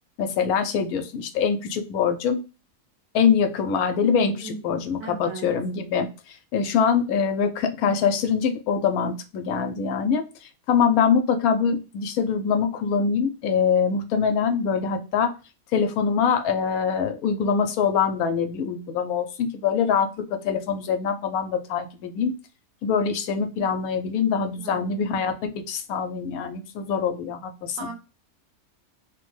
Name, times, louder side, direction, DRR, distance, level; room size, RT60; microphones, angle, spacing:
voice 1, 0.2-2.4 3.1-10.2 10.7-15.3 15.7-22.3 22.8-27.9, left 6 dB, 85° left, 1.1 m, -24 dB
voice 2, 4.4-5.5 24.6-25.0 27.8-27.9, right 3 dB, 75° right, 1.0 m, -38 dB
3.1 x 2.1 x 3.1 m
omnidirectional pair, 1.5 m